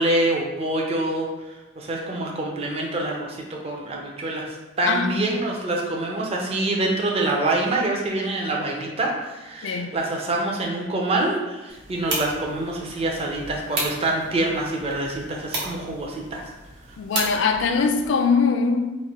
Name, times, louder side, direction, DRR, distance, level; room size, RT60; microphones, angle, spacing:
voice 1, 0.0-16.4, right 2 dB, 30° right, -1 dB, 0.5 m, -26 dB
voice 2, 4.9-5.2 9.6-9.9 17.0-18.9, left 5 dB, 70° left, 6 dB, 0.3 m, -22 dB
sound 1, 11.7-18.1, right 2 dB, 75° right, 1.0 m, -34 dB
3.0 x 2.1 x 4.1 m, 1.1 s
head